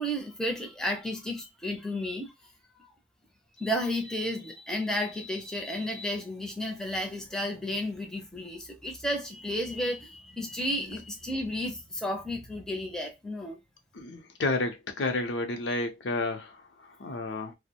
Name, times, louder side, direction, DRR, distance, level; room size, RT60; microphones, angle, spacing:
voice 1, 0.0-2.3 3.6-13.6, left 1 dB, 5° left, 0.5 m, -32 dB
voice 2, 13.9-17.5, left 2 dB, 75° left, 0.6 m, -31 dB
2.5 x 2.0 x 2.7 m
head